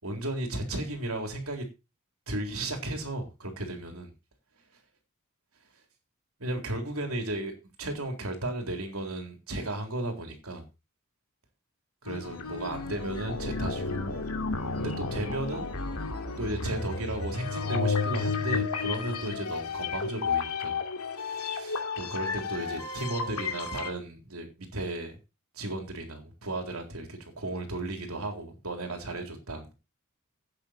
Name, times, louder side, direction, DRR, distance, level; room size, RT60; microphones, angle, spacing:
voice 1, 0.0-1.7 2.3-4.1 6.4-7.5 7.8-10.7 12.0-14.1 14.8-15.7 16.4-20.8 21.2-25.2 25.5-29.7, right 1 dB, 70° right, 4 dB, 3.7 m, -34 dB
sound 1, 12.1-23.9, left 4 dB, 85° left, 2.4 m, -32 dB
11.5 x 9.2 x 4.4 m, 0.28 s
head